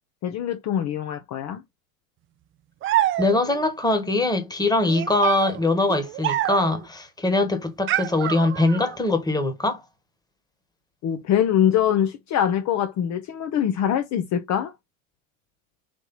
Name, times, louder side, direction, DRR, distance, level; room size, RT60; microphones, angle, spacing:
voice 1, 0.2-1.6 11.0-14.7, left 10 dB, 40° left, 0.7 m, -23 dB
sound 1, 2.8-3.7 4.9-6.9 7.9-9.0, right 13 dB, 30° right, 0.4 m, -27 dB
voice 2, 3.2-9.8, left 2 dB, 10° left, 1.3 m, -22 dB
4.3 x 2.9 x 4.0 m
supercardioid pair, 100°, 42 cm